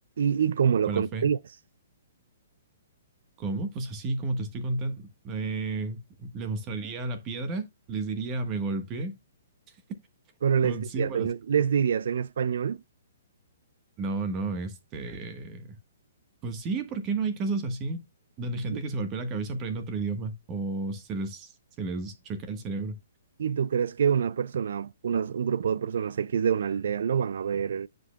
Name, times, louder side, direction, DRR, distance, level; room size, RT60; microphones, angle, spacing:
voice 1, 0.2-1.4 10.4-12.8 23.4-27.9, right 7 dB, 65° right, 0.4 m, -26 dB
voice 2, 0.9-1.2 3.4-9.1 10.6-11.3 14.0-15.8 16.4-18.0 18.4-21.5 21.8-23.0, right 3 dB, 30° right, 1.2 m, -32 dB
9.5 x 5.2 x 2.2 m
hypercardioid pair, 130°, 0 cm